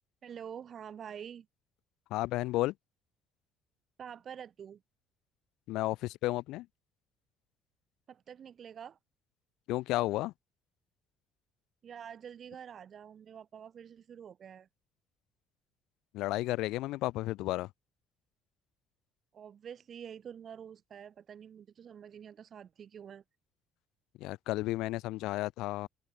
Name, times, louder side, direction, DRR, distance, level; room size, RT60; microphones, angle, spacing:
voice 1, 0.2-1.5 4.0-4.8 8.1-9.0 11.8-14.7 19.3-23.2, right 8 dB, 40° right, 6.1 m, -47 dB
voice 2, 2.1-2.7 5.7-6.7 9.7-10.3 16.1-17.7 24.2-25.9, left 18 dB, 75° left, 1.1 m, -32 dB
open air
cardioid pair, 135°, 0 cm